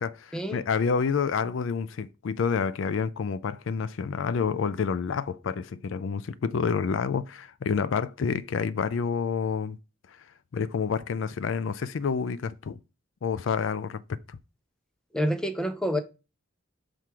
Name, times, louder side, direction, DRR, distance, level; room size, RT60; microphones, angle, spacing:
voice 1, 0.0-9.8 10.5-12.8 13.2-14.0 14.3-14.4, left 5 dB, 70° left, 0.4 m, -28 dB
voice 2, 15.1-16.0, equal, 5° left, 0.7 m, -27 dB
5.9 x 4.8 x 4.6 m
head